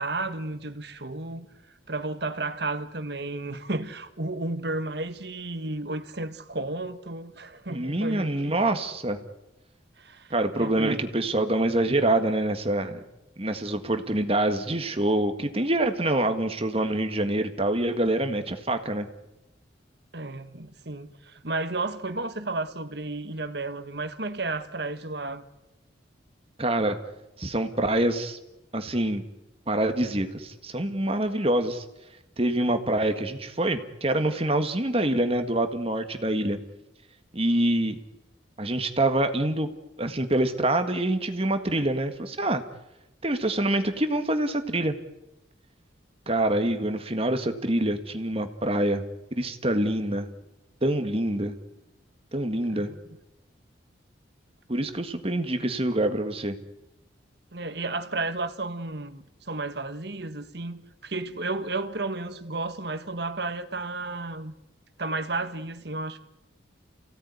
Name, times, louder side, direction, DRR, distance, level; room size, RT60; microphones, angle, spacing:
voice 1, 0.0-1.5 1.9-8.6 10.0-11.0 20.1-25.5 52.7-53.0 57.5-64.5 65.0-66.2, right 2 dB, 60° right, 1.6 m, -33 dB
voice 2, 7.7-9.2 10.3-13.0 13.4-19.1 26.6-27.0 27.4-28.4 28.7-29.2 29.7-31.8 32.4-36.6 37.3-38.0 38.6-39.7 40.0-42.6 43.2-45.0 46.3-49.0 49.3-50.3 50.8-51.5 52.3-52.9 54.7-56.6, right 1 dB, 30° right, 1.8 m, -25 dB
29.5 x 17.0 x 9.6 m
head